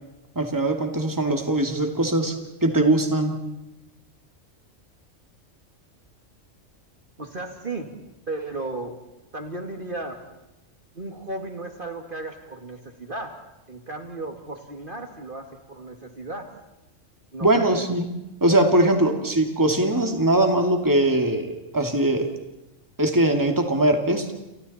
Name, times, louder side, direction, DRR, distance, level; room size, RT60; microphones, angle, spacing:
voice 1, 0.4-2.4 2.6-3.3 17.4-18.1 18.4-22.3 23.0-24.3, right 1 dB, 15° right, 4 dB, 2.4 m, -21 dB
voice 2, 7.2-7.9 8.3-9.0 9.3-10.2 10.9-13.3 13.7-16.5 17.3-17.7, right 2 dB, 45° right, 4 dB, 2.4 m, -35 dB
30.0 x 29.5 x 4.3 m, 0.97 s
omnidirectional pair, 1.3 m